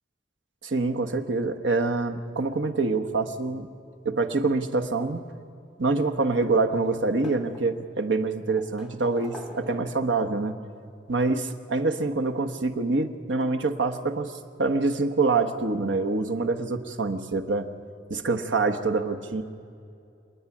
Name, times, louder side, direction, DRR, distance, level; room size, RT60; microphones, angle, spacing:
voice 1, 0.6-3.7 4.0-5.2 5.8-10.5 11.1-14.3 14.6-17.7 18.1-19.4, right 3 dB, 90° right, 7 dB, 1.2 m, -25 dB
sound 1, 5.9-6.6 6.9-8.0 8.5-10.2 11.4-11.5 13.0-13.1 13.4-13.5, left 1 dB, 5° right, 1.3 m, -45 dB
27.5 x 9.6 x 9.9 m, 2.5 s
head